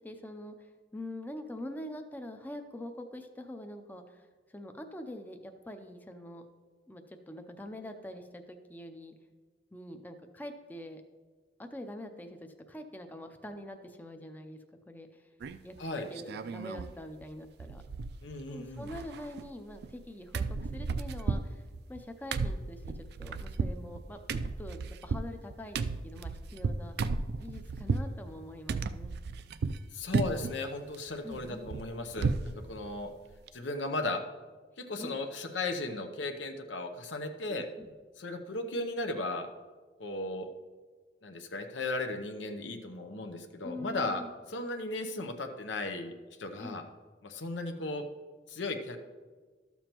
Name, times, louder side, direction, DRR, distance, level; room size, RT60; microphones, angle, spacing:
voice 1, 0.0-6.4 6.9-9.1 9.7-11.0 11.6-14.6 14.9-15.2 15.6-15.7 16.1-17.8 18.5-21.6 21.9-26.9 27.4-29.1 31.2-31.8 35.0-35.2 37.5-37.9 43.6-44.3 46.6-46.8, left 1 dB, 10° left, 6 dB, 0.5 m, -44 dB
sound 1, 15.4-15.8 16.1-16.9 17.2-17.3 17.6-18.4 18.7-20.1 20.3-28.1 28.7-29.8 30.1-30.6 30.9-32.5 32.9-33.0 33.3-33.5, right 4 dB, 60° right, 0.3 m, -34 dB
voice 2, 18.2-18.9 29.9-33.1 33.5-34.2 34.8-37.7 38.2-39.5 40.0-40.5 41.2-44.2 44.5-46.1 46.4-46.8 47.2-48.0 48.5-49.0, left 2 dB, 90° left, 6 dB, 0.8 m, -36 dB
12.5 x 7.0 x 2.9 m, 1.4 s
head